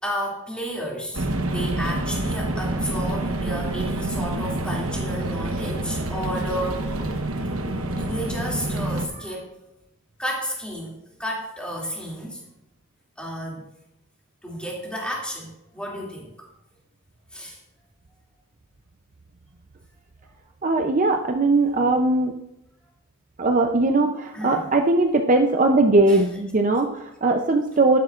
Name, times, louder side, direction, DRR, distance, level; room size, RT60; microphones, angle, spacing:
voice 1, 0.0-6.9 7.9-9.5 10.2-12.4 13.2-13.6 14.4-16.5 17.3-17.6 24.3-24.7 26.1-26.2, equal, 5° left, -4 dB, 2.5 m, -32 dB
sound 1, 1.1-9.1, right 2 dB, 75° right, 1.1 m, -27 dB
voice 2, 20.6-22.3 23.4-28.0, right 2 dB, 35° right, 4 dB, 0.6 m, -20 dB
11.5 x 10.5 x 2.5 m, 0.86 s
head